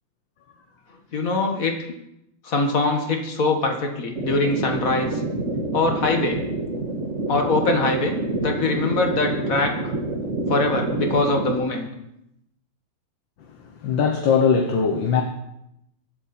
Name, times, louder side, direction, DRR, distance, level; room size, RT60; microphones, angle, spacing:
voice 1, 1.1-1.7 2.4-5.2 5.7-6.4 7.3-8.2 8.4-9.8 10.5-11.9, left 3 dB, 45° left, 3 dB, 2.2 m, -22 dB
sound 1, 4.2-11.6, right 2 dB, 40° right, 2.1 m, -27 dB
voice 2, 13.8-15.2, left 6 dB, 80° left, 3 dB, 1.9 m, -20 dB
23.0 x 8.5 x 4.3 m, 0.81 s
omnidirectional pair, 2.0 m